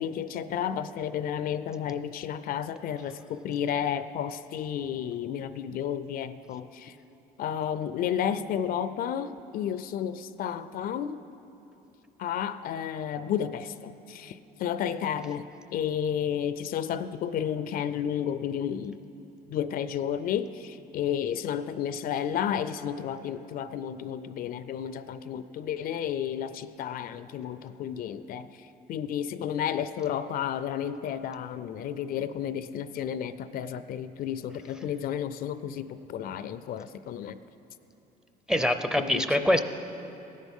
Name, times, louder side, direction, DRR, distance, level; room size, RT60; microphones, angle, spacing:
voice 1, 0.0-7.0 7.4-11.2 12.2-15.4 15.7-19.0 19.5-37.4 39.0-39.3, left 9 dB, 60° left, 13 dB, 0.4 m, -32 dB
voice 2, 38.5-39.6, left 1 dB, 5° right, 8 dB, 0.5 m, -24 dB
18.0 x 10.5 x 3.6 m, 2.9 s
cardioid pair, 110°, 17 cm